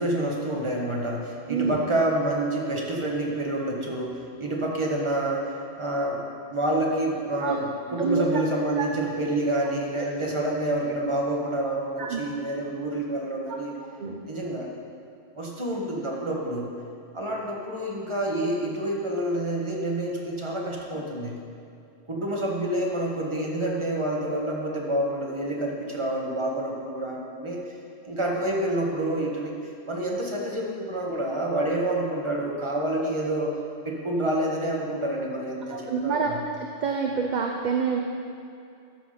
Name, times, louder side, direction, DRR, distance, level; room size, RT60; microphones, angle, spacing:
voice 1, 0.0-6.2 6.5-13.7 14.3-14.7 15.3-16.7 17.1-21.4 22.1-27.6 28.0-29.5 29.9-33.5 33.8-36.4, right 1 dB, 25° right, -2 dB, 1.4 m, -28 dB
voice 2, 7.9-8.2 8.8-8.9 9.5-9.6 10.3-10.4 12.0-12.2 14.0-14.2 35.7-36.3 36.6-38.0, right 5 dB, 45° right, 2 dB, 0.7 m, -27 dB
13.0 x 6.2 x 5.0 m, 2.5 s
omnidirectional pair, 1.2 m